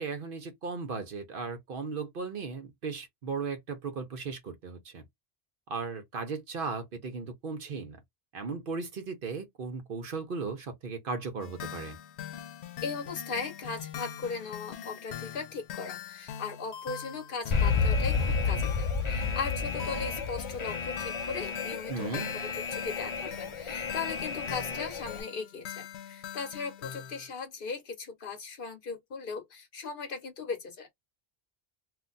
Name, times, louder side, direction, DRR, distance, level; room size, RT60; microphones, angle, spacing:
voice 1, 0.0-5.0 5.7-8.0 8.3-12.0 21.9-22.3, right 4 dB, 60° right, 0.9 m, -36 dB
sound 1, 11.4-27.3, left 9 dB, 90° left, 0.9 m, -43 dB
voice 2, 12.8-30.9, left 5 dB, 60° left, 1.0 m, -38 dB
Alarm, 17.5-25.2, left 5 dB, 40° left, 0.4 m, -31 dB
2.5 x 2.2 x 3.8 m
omnidirectional pair, 1.1 m